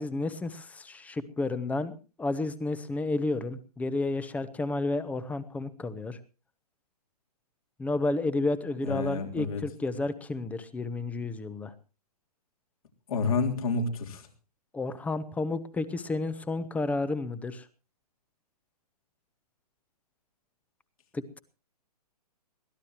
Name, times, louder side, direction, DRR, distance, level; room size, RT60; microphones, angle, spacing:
voice 1, 0.0-6.2 7.8-11.7 14.7-17.6 21.1-21.4, left 2 dB, 5° left, 15 dB, 1.0 m, -31 dB
voice 2, 8.8-9.6 13.1-14.3, left 4 dB, 60° left, 2 dB, 3.8 m, -29 dB
22.5 x 16.0 x 3.0 m, 0.34 s
figure-of-eight pair, 125°, 21 cm